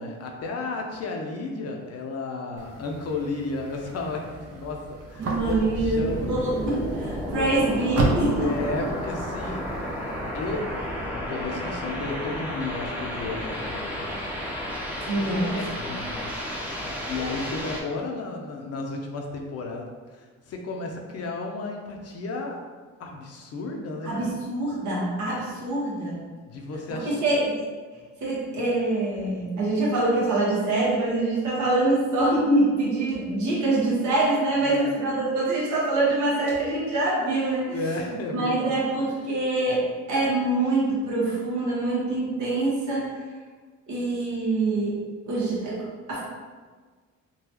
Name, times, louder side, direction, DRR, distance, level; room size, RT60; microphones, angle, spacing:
voice 1, 0.0-6.3 7.3-7.5 8.4-9.7 10.3-10.8 11.1-14.3 15.2-16.3 16.7-22.6 23.0-24.1 26.5-27.2 34.6-34.9 37.7-38.8, left 3 dB, 55° left, 1 dB, 0.6 m, -33 dB
sound 1, 2.6-11.1, right 2 dB, 50° right, 0.6 m, -34 dB
voice 2, 5.2-8.5 15.1-15.6 24.0-26.2 26.9-27.6 28.2-37.8 38.3-43.1 43.9-45.0 45.3-46.2, right 2 dB, 75° right, -5 dB, 1.2 m, -25 dB
sound 2, 5.3-17.8, equal, 5° right, 0.6 m, -32 dB
3.8 x 2.3 x 2.8 m, 1.4 s
cardioid pair, 90°, 30 cm